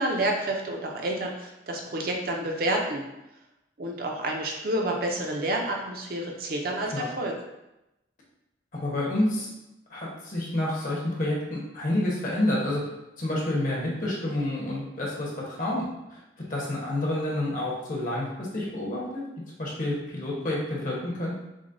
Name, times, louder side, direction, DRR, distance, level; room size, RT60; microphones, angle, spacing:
voice 1, 0.0-3.0 3.8-7.3, right 1 dB, 55° right, 1 dB, 0.5 m, -29 dB
voice 2, 8.7-9.5 9.9-12.8 13.2-16.2 16.5-19.2 19.6-21.4, left 1 dB, 45° left, -4 dB, 1.0 m, -29 dB
6.0 x 2.2 x 2.6 m, 0.92 s
head